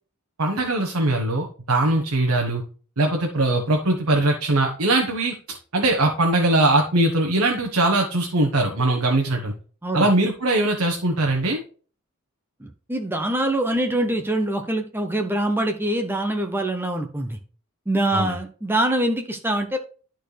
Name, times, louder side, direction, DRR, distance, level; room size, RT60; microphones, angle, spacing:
voice 1, 0.4-2.6 3.0-5.4 5.7-9.5 9.9-11.6 18.1-18.4, right 2 dB, 85° right, 1 dB, 1.3 m, -21 dB
voice 2, 12.6-17.4 17.9-19.8, right 1 dB, 10° right, 5 dB, 0.7 m, -24 dB
12.5 x 4.4 x 3.3 m, 0.40 s
head